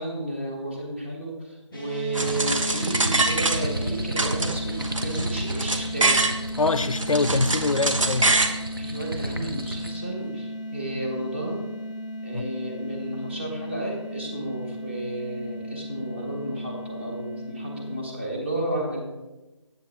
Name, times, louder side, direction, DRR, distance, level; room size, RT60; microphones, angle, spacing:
voice 1, 0.0-6.2 8.8-11.6 12.2-19.0, right 1 dB, 20° right, 1.3 m, -32 dB
sound 1, 1.7-18.0, equal, 5° right, 0.8 m, -36 dB
sound 2, 2.1-3.9 4.2-6.4 6.8-8.6, right 2 dB, 75° right, 1.1 m, -24 dB
sound 3, 2.2-10.0, right 1 dB, 45° right, 1.0 m, -34 dB
voice 2, 6.6-8.3 12.3-12.5, left 3 dB, 80° left, 0.6 m, -24 dB
10.0 x 8.0 x 3.5 m
figure-of-eight pair, 175°, 17 cm